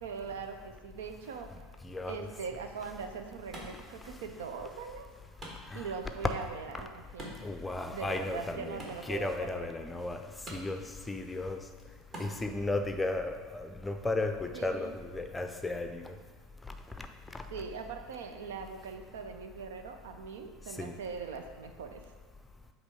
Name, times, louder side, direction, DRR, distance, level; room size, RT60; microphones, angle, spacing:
voice 1, 0.0-1.5 2.0-5.1 5.7-7.3 7.9-9.7 14.5-14.9 17.5-22.1, right 5 dB, 65° right, 6 dB, 0.5 m, -41 dB
voice 2, 1.8-2.3 4.1-4.2 5.6-5.9 7.4-8.8 9.1-16.2 16.6-17.5 20.8-21.0, left 2 dB, 10° left, 6 dB, 0.5 m, -35 dB
Wood, 2.7-12.7, right 1 dB, 35° right, 1.6 m, -51 dB
8.0 x 3.0 x 4.8 m, 1.5 s
figure-of-eight pair, 75°, 0 cm